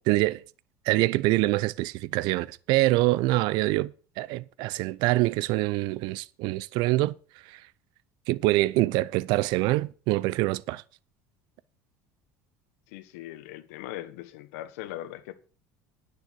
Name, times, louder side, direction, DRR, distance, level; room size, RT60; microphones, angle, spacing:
voice 1, 0.1-0.4 0.9-3.9 4.2-7.1 7.5-7.6 8.3-10.8, right 18 dB, 70° right, 0.5 m, -25 dB
voice 2, 12.9-15.4, left 14 dB, 80° left, 1.2 m, -40 dB
10.0 x 6.6 x 6.8 m
supercardioid pair, 100°, 8 cm